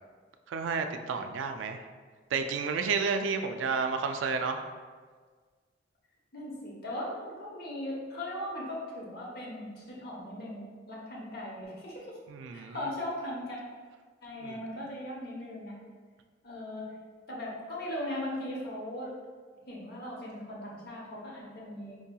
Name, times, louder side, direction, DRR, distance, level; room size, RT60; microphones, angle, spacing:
voice 1, 0.5-1.9 2.3-4.6 12.3-12.8 14.4-14.6, right 5 dB, 90° right, 6 dB, 0.3 m, -31 dB
voice 2, 6.3-12.2 12.5-13.6 14.2-15.8 16.4-16.9 17.3-19.1 19.7-22.0, left 1 dB, 55° left, -4 dB, 0.8 m, -38 dB
4.6 x 2.7 x 2.2 m, 1.5 s
head